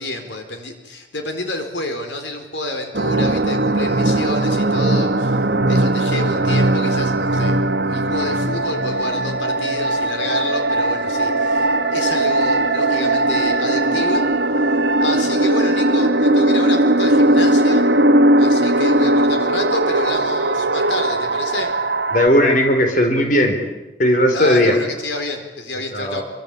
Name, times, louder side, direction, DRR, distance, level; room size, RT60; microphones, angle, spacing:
voice 1, 0.0-7.6 7.8-14.3 14.5-14.6 15.0-17.9 18.4-21.7 24.3-26.2, left 2 dB, 80° left, 6 dB, 4.5 m, -28 dB
sound 1, 2.9-22.3, right 1 dB, 60° right, 1.4 m, -18 dB
voice 2, 22.1-23.6 24.0-24.7 25.9-26.2, equal, 45° left, 4 dB, 4.3 m, -16 dB
28.5 x 24.5 x 8.5 m, 1.0 s
head